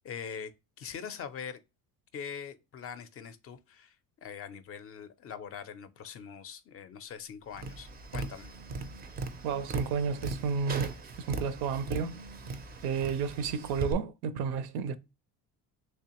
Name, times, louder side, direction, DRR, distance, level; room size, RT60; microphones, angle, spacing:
voice 1, 0.0-0.5 0.8-1.6 2.1-4.0 4.2-8.5, left 7 dB, 40° left, 0.4 m, -42 dB
Tap, 7.5-13.9, right 3 dB, 25° right, 0.4 m, -38 dB
voice 2, 9.4-12.2 12.8-15.0, right 6 dB, 80° right, 0.6 m, -32 dB
3.4 x 3.3 x 2.9 m
cardioid pair, 130°, 37 cm